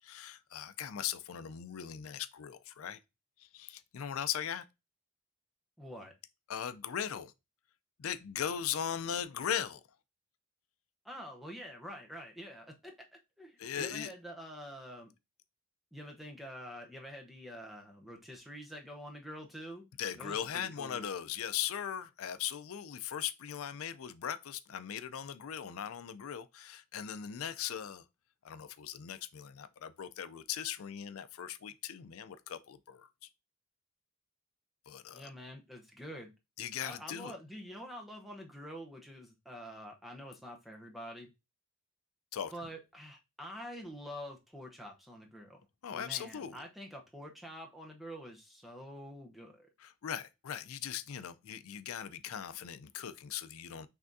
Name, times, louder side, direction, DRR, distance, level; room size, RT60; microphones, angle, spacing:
voice 1, 0.0-3.0 3.4-4.6 6.5-7.3 8.0-9.8 13.6-14.1 20.0-28.0 28.4-33.3 34.9-35.3 36.6-37.3 42.3-42.5 45.8-46.6 49.8-53.9, left 9 dB, 80° left, 0.4 m, -39 dB
voice 2, 5.8-6.1 11.0-13.1 13.4-15.1 15.9-19.9 20.2-21.1 35.1-36.3 36.8-41.3 42.5-45.6 45.9-49.7, equal, ahead, 0.7 m, -47 dB
5.9 x 3.4 x 2.6 m
head